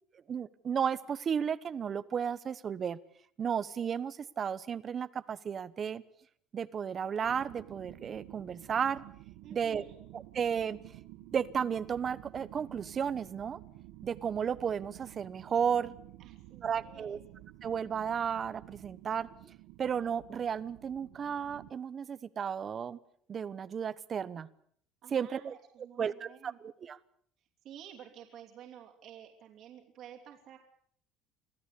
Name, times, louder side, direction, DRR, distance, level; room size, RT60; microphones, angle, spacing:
voice 1, 0.3-3.0 3.4-6.0 6.5-9.0 9.5-9.8 10.1-10.8 11.2-13.6 14.0-15.9 16.6-17.2 17.6-19.5 19.8-23.0 23.3-24.5 25.1-25.5 26.0-27.0, right 7 dB, 30° right, 17 dB, 1.0 m, -33 dB
sound 1, 7.2-21.7, right 17 dB, 80° right, 1.4 m, -52 dB
voice 2, 9.4-10.0 16.2-17.2 25.0-26.6 27.4-30.6, right 10 dB, 50° right, 1 dB, 3.1 m, -52 dB
25.0 x 16.0 x 8.4 m, 0.63 s
cardioid pair, 150°, 0 cm